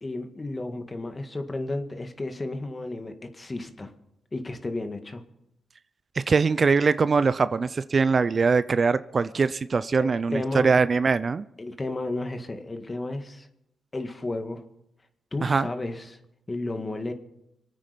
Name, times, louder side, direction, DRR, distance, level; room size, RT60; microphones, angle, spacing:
voice 1, 0.0-3.9 4.3-5.2 10.0-10.7 11.6-13.5 13.9-14.6 15.3-16.2 16.5-17.1, left 2 dB, 30° left, 7 dB, 1.9 m, -33 dB
voice 2, 6.3-11.4 15.4-15.7, right 4 dB, 45° right, 14 dB, 0.5 m, -22 dB
25.5 x 9.1 x 5.2 m, 0.82 s
cardioid pair, 70°, 0 cm